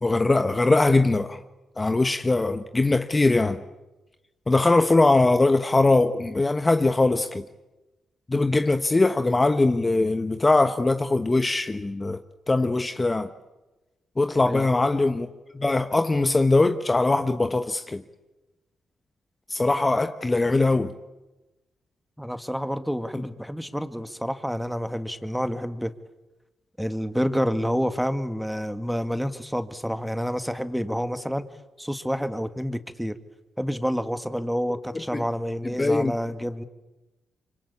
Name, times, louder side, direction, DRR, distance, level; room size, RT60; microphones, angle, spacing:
voice 1, 0.0-1.4 1.8-3.6 4.5-7.4 8.3-12.2 12.5-13.3 14.2-15.3 15.5-18.0 19.5-20.9 35.1-35.2 35.8-36.1, left 2 dB, 25° left, 1.2 m, -21 dB
voice 2, 22.2-25.9 26.8-31.4 31.8-33.2 33.6-36.6, equal, ahead, 1.9 m, -28 dB
26.0 x 24.5 x 8.5 m
supercardioid pair, 50°, 0 cm